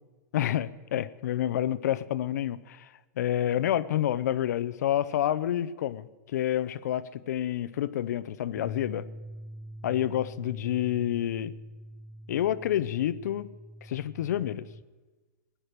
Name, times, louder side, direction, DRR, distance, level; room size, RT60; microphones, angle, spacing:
voice 1, 0.3-9.1 9.8-11.5 12.3-13.5 13.8-14.7, left 11 dB, 65° left, 17 dB, 0.6 m, -29 dB
sound 1, 8.6-14.8, right 1 dB, ahead, 0.5 m, -45 dB
17.0 x 10.5 x 6.6 m, 1.3 s
supercardioid pair, 165°, 10 cm